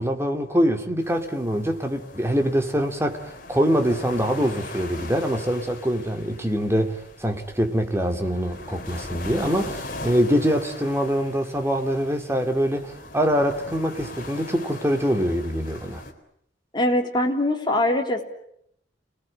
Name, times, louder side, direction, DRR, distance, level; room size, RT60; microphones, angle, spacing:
voice 1, 0.0-6.9 7.2-16.0, equal, 15° right, 2.6 m, -24 dB
sound 1, 1.0-16.1, left 2 dB, 50° left, 4.0 m, -40 dB
voice 2, 16.7-18.2, left 1 dB, 25° left, 3.4 m, -22 dB
29.0 x 19.5 x 9.9 m
head